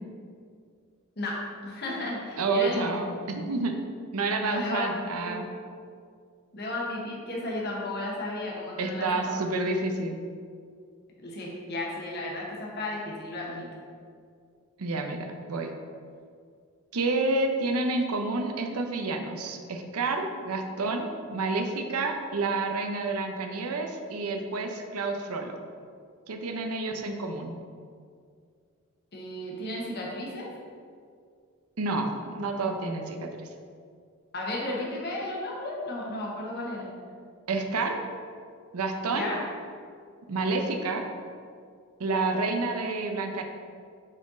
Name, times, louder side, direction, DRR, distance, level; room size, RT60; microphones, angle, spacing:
voice 1, 1.2-2.9 4.4-5.4 6.5-9.4 11.2-13.7 29.1-30.5 34.3-36.9 39.1-39.4, left 1 dB, 45° left, -4 dB, 1.0 m, -34 dB
voice 2, 2.4-3.7 4.1-5.5 8.8-10.2 14.8-15.2 15.5-15.7 16.9-25.6 26.3-27.6 31.8-33.3 37.5-38.0 38.7-39.3 40.3-41.0 42.0-43.4, right 3 dB, 85° right, 4 dB, 0.7 m, -29 dB
6.3 x 4.4 x 3.7 m, 2.2 s
head